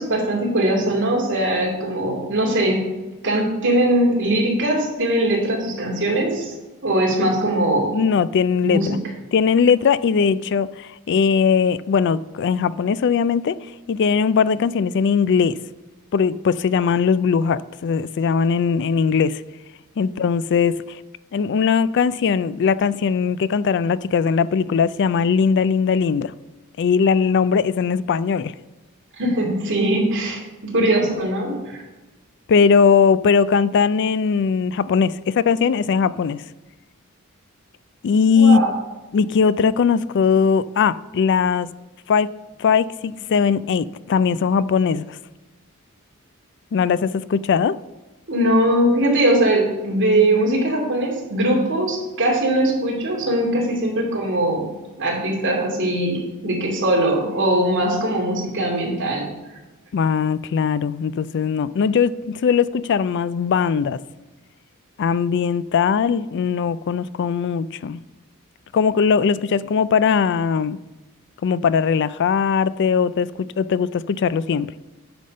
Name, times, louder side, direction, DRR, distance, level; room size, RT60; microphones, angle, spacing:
voice 1, 0.0-2.8 3.2-6.5 6.8-8.0 8.6-8.9 29.2-30.4 30.7-31.8 38.4-38.7 48.3-54.6 55.0-59.3, right 1 dB, 55° right, 2.7 m, -20 dB
voice 2, 7.9-9.0 9.3-13.6 13.9-15.6 16.1-19.4 20.0-21.0 21.3-26.3 26.8-28.5 32.5-36.4 38.0-38.6 39.1-41.7 42.1-42.3 42.6-45.1 46.7-47.8 59.9-64.0 65.0-68.0 68.7-70.8 71.4-74.7, left 6 dB, 55° left, 0.3 m, -19 dB
9.4 x 5.1 x 6.5 m
head